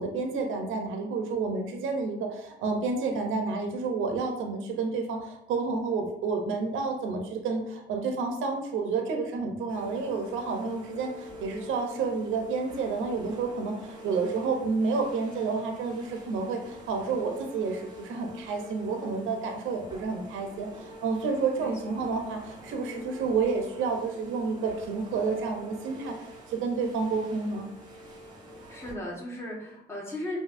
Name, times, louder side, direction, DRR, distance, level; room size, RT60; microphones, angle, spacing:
voice 1, 0.0-26.1 26.5-27.7, right 4 dB, 85° right, 3 dB, 0.7 m, -30 dB
sound 1, 9.7-28.9, equal, 20° right, 1.1 m, -46 dB
voice 2, 21.5-22.1 28.7-30.4, left 1 dB, 15° left, -4 dB, 1.4 m, -37 dB
5.3 x 2.7 x 2.5 m, 0.81 s
cardioid pair, 90°, 20 cm